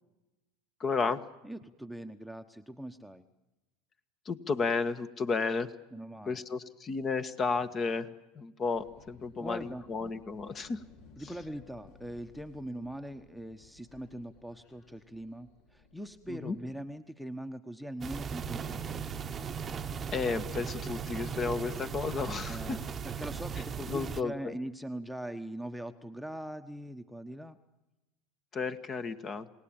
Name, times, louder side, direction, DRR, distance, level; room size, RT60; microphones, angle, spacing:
voice 1, 0.8-1.2 4.2-5.7 6.3-10.8 16.3-16.6 20.1-22.8 23.9-24.5 28.5-29.5, left 4 dB, 35° left, 11 dB, 1.6 m, -33 dB
voice 2, 1.4-3.2 5.9-6.4 9.4-9.8 11.2-19.1 22.5-27.6, right 1 dB, ahead, 11 dB, 1.2 m, -41 dB
sound 1, 8.7-16.8, left 3 dB, 65° left, 4.5 m, -58 dB
sound 2, 18.0-24.2, right 7 dB, 30° right, 1.0 m, -38 dB
sound 3, 18.4-24.5, right 7 dB, 90° right, 1.0 m, -47 dB
28.5 x 18.5 x 8.9 m, 1.0 s
hypercardioid pair, 90°, 0 cm